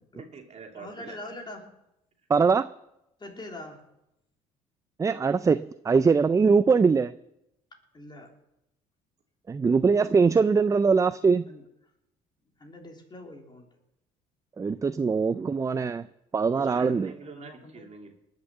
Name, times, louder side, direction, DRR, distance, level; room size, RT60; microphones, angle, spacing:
voice 1, 0.2-1.2 16.5-18.2, right 4 dB, 40° right, 2 dB, 2.8 m, -44 dB
voice 2, 0.7-1.7 3.2-3.8 7.9-8.3 11.5-11.6 12.6-13.7 16.5-17.9, left 1 dB, 25° left, 1 dB, 3.4 m, -43 dB
voice 3, 2.3-2.7 5.0-7.1 9.5-11.5 14.6-16.0 16.3-17.1, right 5 dB, 20° right, 15 dB, 0.4 m, -22 dB
19.5 x 6.7 x 7.2 m, 0.86 s
supercardioid pair, 75°, 17 cm